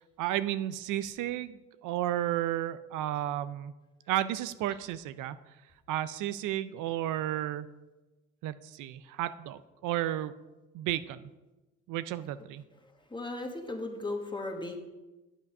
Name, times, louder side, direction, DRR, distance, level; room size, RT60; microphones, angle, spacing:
voice 1, 0.2-1.6 1.8-3.7 4.1-5.4 5.9-7.7 8.4-10.3 10.7-11.3 11.9-12.6, right 13 dB, 90° right, 14 dB, 0.5 m, -32 dB
voice 2, 12.8-14.8, left 2 dB, 15° left, 3 dB, 1.5 m, -37 dB
8.4 x 8.1 x 5.3 m, 1.1 s
cardioid pair, 90°, 30 cm